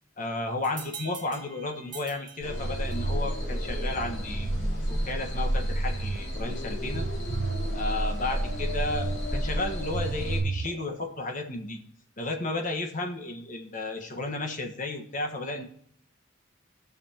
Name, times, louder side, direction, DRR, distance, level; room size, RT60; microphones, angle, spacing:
voice 1, 0.2-4.5 4.9-7.0 7.7-11.8 12.2-15.6, left 2 dB, 40° left, 4 dB, 1.4 m, -33 dB
sound 1, 0.6-3.2, right 7 dB, 20° right, 1.5 m, -45 dB
sound 2, 2.4-10.4, equal, 65° left, 4.7 m, -31 dB
sound 3, 2.6-4.7 5.1-6.2 6.6-9.2 9.5-11.0, right 4 dB, 55° right, 0.5 m, -35 dB
20.0 x 7.0 x 2.9 m, 0.66 s
head